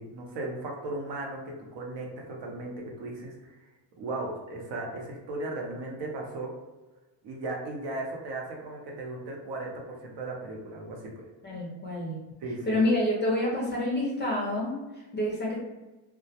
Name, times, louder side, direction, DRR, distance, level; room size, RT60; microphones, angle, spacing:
voice 1, 0.0-3.5 4.0-6.5 7.2-11.3 12.4-12.8, right 2 dB, 65° right, -1 dB, 0.7 m, -36 dB
voice 2, 11.4-12.2 12.6-15.6, left 1 dB, 25° left, -3 dB, 0.4 m, -28 dB
2.2 x 2.1 x 2.7 m, 1.1 s
cardioid pair, 140°, 47 cm